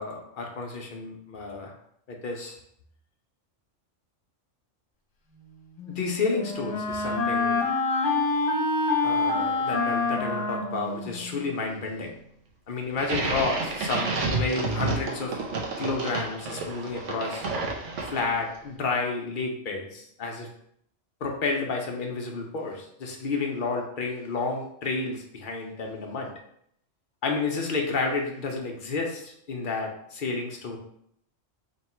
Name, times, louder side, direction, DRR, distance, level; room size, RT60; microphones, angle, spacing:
voice 1, 0.0-1.7 2.1-2.6 5.9-7.6 9.0-12.2 12.7-15.4 15.8-17.5 18.0-20.5 21.2-26.3 27.2-30.8, left 3 dB, 50° left, 1 dB, 0.8 m, -31 dB
Wind instrument woodwind instrument, 5.8-11.6, left 3 dB, 75° left, 1.2 m, -27 dB
sound 1, 13.0-18.5, right 3 dB, 75° right, 1.0 m, -30 dB
3.1 x 2.9 x 4.3 m, 0.70 s
omnidirectional pair, 1.3 m